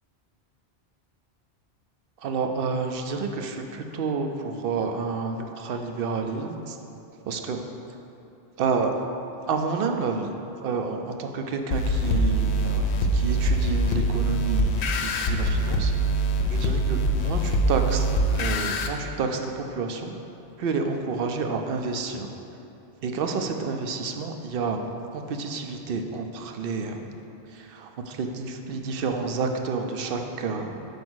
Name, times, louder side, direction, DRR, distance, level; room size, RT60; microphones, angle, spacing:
voice 1, 2.2-6.8 7.2-7.6 8.6-8.9 9.5-10.3 10.6-15.9 16.5-18.1 18.3-20.1 20.6-22.3 23.0-24.8 25.1-27.1 27.5-30.9, right 4 dB, 65° right, 5 dB, 0.7 m, -29 dB
sound 1, 11.7-18.9, right 1 dB, 85° left, 0.8 m, -24 dB
5.2 x 4.8 x 6.1 m, 2.9 s
omnidirectional pair, 1.1 m